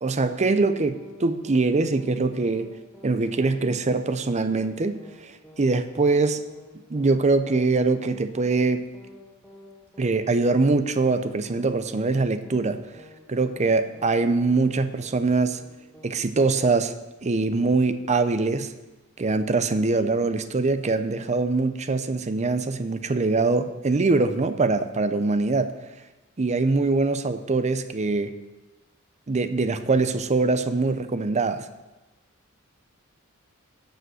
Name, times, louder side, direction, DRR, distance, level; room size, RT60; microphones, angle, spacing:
voice 1, 0.0-2.7 3.0-6.4 6.9-8.9 10.0-12.8 13.3-15.6 16.0-16.9 17.2-18.7 19.2-25.7 26.4-28.3 29.3-31.7, right 3 dB, 30° right, 11 dB, 0.6 m, -23 dB
sound 1, 0.9-1.2 1.4-1.7 1.9-2.2 2.4-2.7 2.9-3.2 3.4-3.7 3.9-4.2 4.4-4.7 4.9-5.2 5.4-5.7 5.9-6.2 6.4-6.7 6.9-7.2 7.4-7.7 7.9-8.2 8.4-8.7 8.9-9.2 9.4-9.7 9.9-10.2 10.4-10.7 10.9-11.2 11.4-11.7 11.9-12.2 12.4-12.7 12.9-13.2 13.4-13.7 13.9-14.2 14.4-14.7 14.9-15.2 15.4-15.7 15.9-16.2 16.4-16.7, left 1 dB, 5° left, 2.1 m, -49 dB
11.5 x 5.3 x 7.8 m, 1.1 s
head